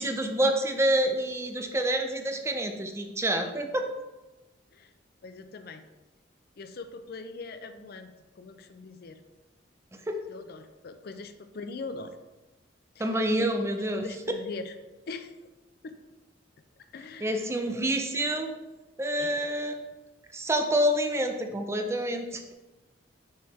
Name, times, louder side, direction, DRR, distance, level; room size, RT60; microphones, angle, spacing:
voice 1, 0.0-3.9 9.9-10.2 13.0-14.1 17.2-18.5 19.0-19.7 20.3-22.5, right 1 dB, 15° right, 4 dB, 0.4 m, -27 dB
voice 2, 5.2-5.8 6.6-9.2 10.3-12.2 13.0-13.5 13.8-14.7 15.1-15.4 15.8-16.0 16.8-17.5 19.2-19.4, left 3 dB, 55° left, 9 dB, 0.4 m, -42 dB
7.1 x 3.3 x 4.2 m, 1.1 s
head